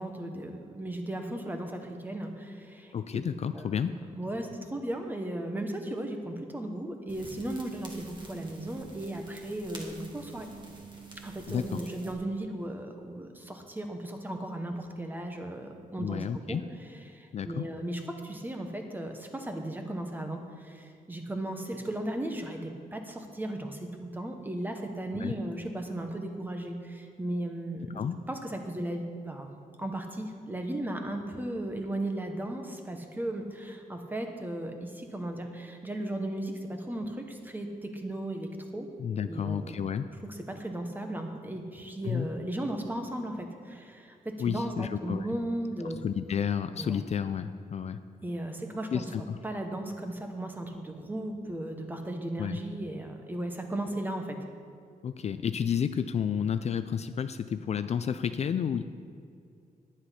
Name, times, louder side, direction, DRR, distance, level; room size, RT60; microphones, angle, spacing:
voice 1, 0.0-2.9 3.5-3.6 4.1-10.5 11.2-16.6 17.1-28.0 28.3-29.5 29.8-38.9 39.2-39.8 40.3-46.0 46.8-47.0 48.2-49.0 49.4-54.4, right 1 dB, 10° right, 4 dB, 1.1 m, -36 dB
voice 2, 2.9-4.0 11.5-11.8 16.0-16.6 17.3-17.7 25.1-25.3 27.9-28.2 39.0-40.1 42.0-42.3 44.4-45.3 45.8-48.0 48.9-49.4 52.4-52.6 55.0-58.8, left 8 dB, 45° left, 11 dB, 0.4 m, -31 dB
sound 1, 7.1-12.1, right 4 dB, 30° right, 1.7 m, -46 dB
10.5 x 10.0 x 5.7 m, 2.3 s
wide cardioid pair, 155°, 15 cm